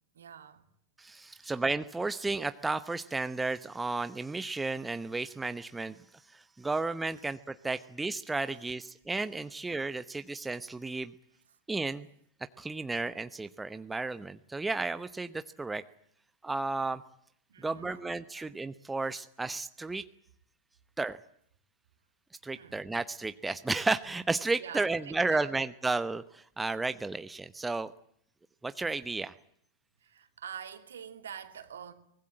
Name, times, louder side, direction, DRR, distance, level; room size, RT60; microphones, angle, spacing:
voice 1, 0.1-0.7 1.3-1.5 7.8-7.9 8.5-8.8 9.3-9.4 11.5-11.6 17.5-18.1 18.3-18.5 22.5-22.8 24.6-25.5 30.0-31.9, right 8 dB, 65° right, 8 dB, 2.6 m, -46 dB
voice 2, 1.0-6.0 6.3-11.1 11.7-12.1 12.6-15.8 16.4-17.0 17.6-20.0 21.0-21.2 22.4-27.9 28.6-29.3, right 3 dB, 10° right, 12 dB, 0.9 m, -33 dB
24.0 x 20.5 x 8.8 m, 0.68 s
figure-of-eight pair, 90°, 0 cm